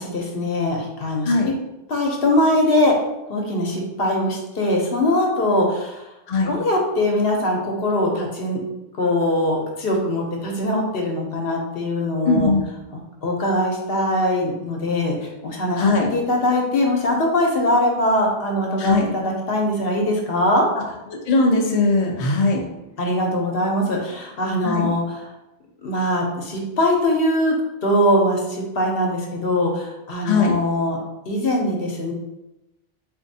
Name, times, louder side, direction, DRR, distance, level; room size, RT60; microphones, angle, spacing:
voice 1, 0.0-1.5 1.9-2.9 3.3-6.0 6.5-8.6 9.0-12.5 13.2-15.2 15.4-15.8 16.1-20.7 23.0-25.0 25.8-27.5 27.8-31.0 31.3-32.1, left 1 dB, 65° left, 0 dB, 0.9 m, -21 dB
voice 2, 12.2-12.6 15.7-16.1 18.8-19.1 20.8-20.9 21.3-22.6 24.6-24.9 30.2-30.6, left 3 dB, 45° left, 0 dB, 0.5 m, -19 dB
4.3 x 2.6 x 2.6 m, 0.95 s
omnidirectional pair, 1.1 m